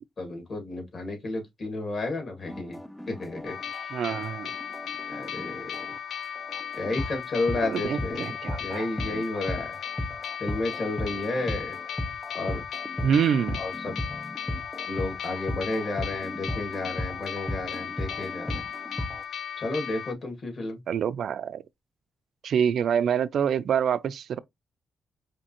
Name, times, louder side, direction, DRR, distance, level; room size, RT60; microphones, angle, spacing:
voice 1, 0.2-2.8 3.1-3.9 5.1-5.7 6.7-8.2 8.6-9.8 10.4-11.8 12.3-12.6 13.6-14.0 14.9-18.6 19.6-20.8, left 2 dB, 45° left, 2.1 m, -32 dB
sound 1, 2.5-19.2, left 1 dB, 5° left, 0.4 m, -36 dB
sound 2, 3.4-20.1, left 8 dB, 65° left, 0.4 m, -37 dB
voice 2, 3.9-4.5 7.6-8.9 13.0-13.6 20.9-21.6 22.4-24.4, right 8 dB, 65° right, 0.3 m, -26 dB
5.1 x 2.7 x 2.9 m
cardioid pair, 120°, 0 cm